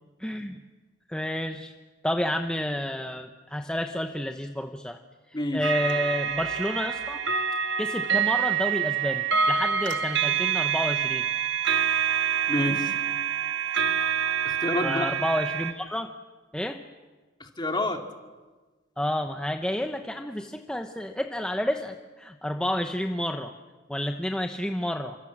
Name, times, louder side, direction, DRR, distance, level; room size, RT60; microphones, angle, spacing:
voice 1, 0.2-0.6 1.1-1.7 2.0-5.0 5.3-7.2 7.8-11.2 14.8-16.1 16.5-16.8 19.0-23.5 23.9-25.2, left 1 dB, 5° left, 5 dB, 0.9 m, -30 dB
sound 1, 5.6-15.7, right 7 dB, 65° right, 1.6 m, -26 dB
voice 2, 12.5-12.9 14.4-15.2 17.4-18.0, left 1 dB, 25° left, 4 dB, 2.3 m, -28 dB
28.5 x 26.0 x 7.4 m, 1.3 s
head